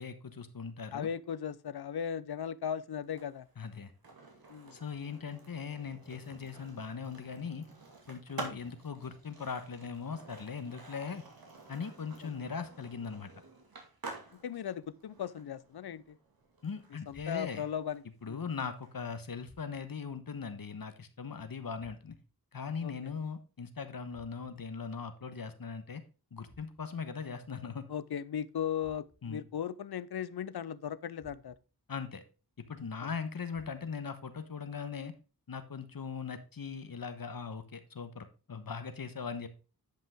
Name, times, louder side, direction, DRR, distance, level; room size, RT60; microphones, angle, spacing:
voice 1, 0.0-1.1 3.6-3.9 4.7-7.7 8.1-11.2 11.7-13.3 16.6-17.7 18.2-22.2 22.5-26.0 26.3-27.9 29.2-29.4 31.9-32.2 32.7-35.1 35.5-39.5, left 5 dB, 65° left, 1.2 m, -40 dB
voice 2, 0.9-3.5 4.5-4.8 8.4-8.5 14.3-16.2 17.1-18.4 22.8-22.9 27.9-31.5 33.0-33.1, left 8 dB, 80° left, 0.6 m, -37 dB
Skateboard, 3.0-18.9, right 3 dB, 65° right, 2.3 m, -50 dB
sound 1, 17.1-17.7 19.4-20.1 21.8-22.4 24.1-24.7 26.4-27.1 28.8-29.4 31.2-31.8 33.5-34.1, equal, 25° right, 3.5 m, -62 dB
10.5 x 5.5 x 3.5 m
wide cardioid pair, 50°, 37 cm